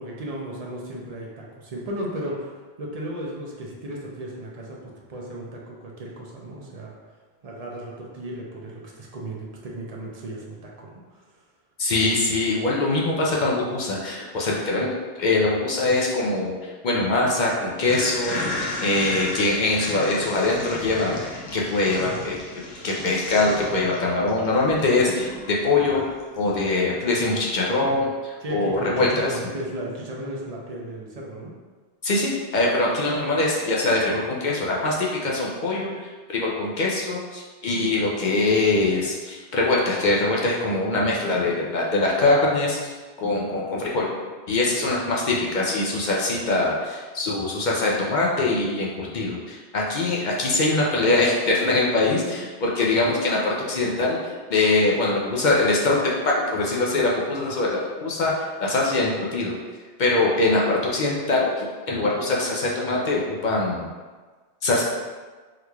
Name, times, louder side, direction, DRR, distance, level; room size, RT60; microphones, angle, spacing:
voice 1, 0.0-6.9 7.4-11.2 28.4-31.5 38.3-38.4 44.8-44.9, right 1 dB, 45° right, -2 dB, 0.5 m, -35 dB
voice 2, 11.8-22.4 22.8-26.1 26.4-29.4 32.0-44.1 44.5-59.6 60.0-63.9 64.6-64.8, left 2 dB, 55° left, -3 dB, 0.5 m, -23 dB
sound 1, 17.9-26.5, left 2 dB, 75° left, 1.0 m, -34 dB
3.7 x 3.1 x 2.2 m, 1.4 s
omnidirectional pair, 1.1 m